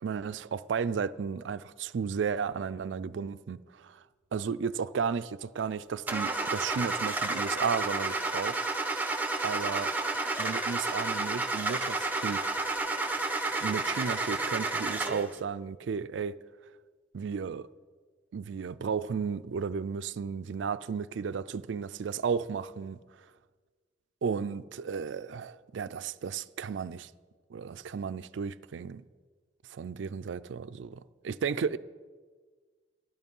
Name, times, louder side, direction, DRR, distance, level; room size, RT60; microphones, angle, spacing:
voice 1, 0.0-4.0 4.3-8.6 9.4-9.9 10.4-12.4 13.6-16.4 17.1-17.7 18.3-23.0 24.2-27.1 27.5-29.0 29.7-31.8, right 6 dB, 75° right, 0.4 m, -34 dB
Car / Engine starting, 6.1-15.3, right 3 dB, 10° right, 0.9 m, -31 dB
12.5 x 12.0 x 5.4 m
head